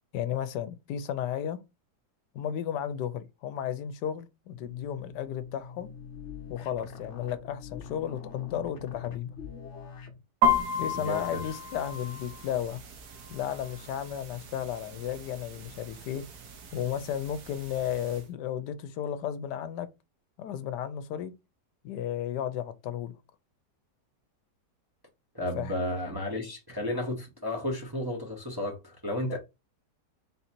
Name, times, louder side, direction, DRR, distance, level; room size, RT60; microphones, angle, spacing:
voice 1, 0.1-1.6 2.3-5.9 6.5-9.3 10.8-12.8 13.3-16.2 16.7-19.9 20.4-21.3 21.8-23.1 25.6-25.7 29.2-29.4, left 10 dB, 80° left, 1.2 m, -33 dB
sound 1, 4.5-10.2, left 6 dB, 55° left, 0.9 m, -44 dB
sound 2, 10.4-18.2, left 2 dB, 65° right, 1.3 m, -34 dB
voice 2, 10.9-11.4 25.3-29.4, left 1 dB, 20° right, 0.6 m, -33 dB
3.9 x 2.7 x 4.3 m
omnidirectional pair, 1.8 m